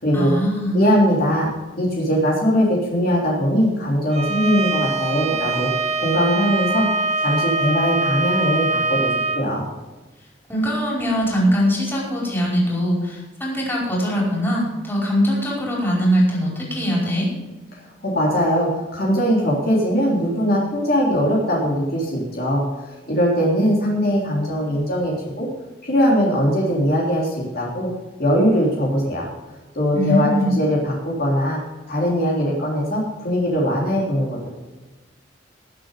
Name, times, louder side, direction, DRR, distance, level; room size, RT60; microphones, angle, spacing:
voice 1, 0.1-0.8 10.5-17.3 29.9-30.5, equal, 10° left, -4 dB, 4.9 m, -21 dB
voice 2, 0.7-5.7 6.0-6.9 7.2-9.1 9.3-9.6 17.7-25.5 25.8-27.9 28.2-29.3 29.7-31.6 31.9-34.5, equal, 55° left, -3 dB, 3.4 m, -20 dB
Bowed string instrument, 4.1-9.4, right 3 dB, 35° right, 1.3 m, -23 dB
19.0 x 7.5 x 5.1 m, 1.2 s
head